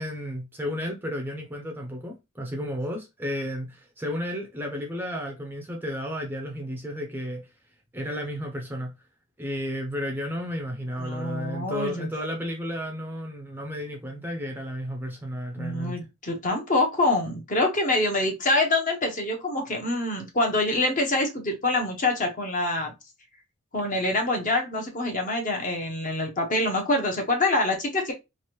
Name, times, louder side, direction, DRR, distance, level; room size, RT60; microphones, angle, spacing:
voice 1, 0.0-7.5 7.9-8.9 9.4-16.1, equal, 10° right, 0.5 m, -33 dB
voice 2, 11.0-12.1 15.6-22.9 23.7-28.1, left 2 dB, 35° left, 0.8 m, -25 dB
3.1 x 2.5 x 2.9 m
head